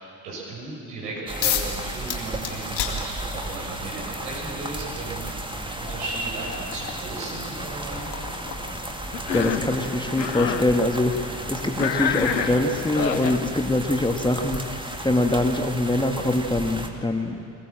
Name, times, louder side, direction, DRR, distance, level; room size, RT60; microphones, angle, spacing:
voice 1, 0.0-5.3 5.6-8.1, right 2 dB, 70° right, -4 dB, 7.7 m, -35 dB
sound 1, 1.3-16.9, right 1 dB, 10° right, 2.1 m, -34 dB
sound 2, 1.4-1.8 2.1-3.6 4.7-4.8 5.4-12.0, left 9 dB, 50° left, 2.3 m, -34 dB
voice 2, 9.0-17.4, left 1 dB, 10° left, 3 dB, 1.8 m, -24 dB
Cough, 9.1-9.7 10.1-10.7 11.8-13.4, left 7 dB, 85° left, 0.9 m, -27 dB
23.0 x 20.5 x 7.7 m, 2.4 s
figure-of-eight pair, 45°, 50 cm